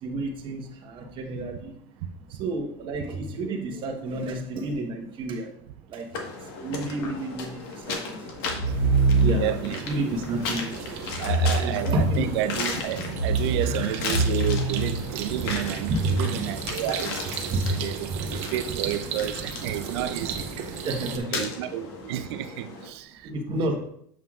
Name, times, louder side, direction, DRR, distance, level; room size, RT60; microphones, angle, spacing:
voice 1, 0.0-1.7 2.3-5.5 5.9-8.3 9.2-10.8 11.1-11.3 11.6-12.2 13.6-14.0 15.9-16.2 17.3-18.4 19.1-19.3 20.8-21.7 23.2-23.8, right 2 dB, 40° right, 3 dB, 1.2 m, -30 dB
sound 1, 6.1-22.9, left 4 dB, 75° left, 1.5 m, -36 dB
sound 2, 8.4-9.7 11.1-12.5 13.0-15.5, right 2 dB, 15° left, 1.5 m, -25 dB
sound 3, 8.7-21.2, right 6 dB, 55° right, 0.9 m, -36 dB
voice 2, 9.4-9.8 11.2-17.2 17.5-20.5 21.3-23.3, right 12 dB, 80° right, 11 dB, 0.5 m, -31 dB
7.4 x 5.6 x 2.4 m, 0.68 s
supercardioid pair, 140°, 13 cm